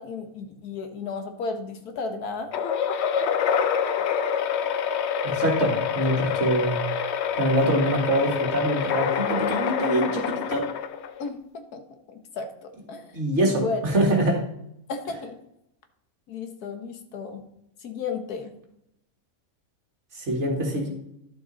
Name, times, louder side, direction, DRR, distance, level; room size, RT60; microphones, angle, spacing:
voice 1, 0.0-2.5 11.2-11.4 11.7-11.8 12.1-12.5 12.9-13.0 13.5-13.8 14.9-15.3 16.3-17.4 17.8-18.5, left 4 dB, 90° left, 6 dB, 1.6 m, -33 dB
sound 1, 2.5-11.3, left 7 dB, 60° left, 0.7 m, -26 dB
voice 2, 5.2-6.8 7.4-10.7 13.1-14.4 20.2-20.9, right 1 dB, 50° right, 0 dB, 2.0 m, -24 dB
11.5 x 6.3 x 4.0 m, 0.80 s
omnidirectional pair, 1.6 m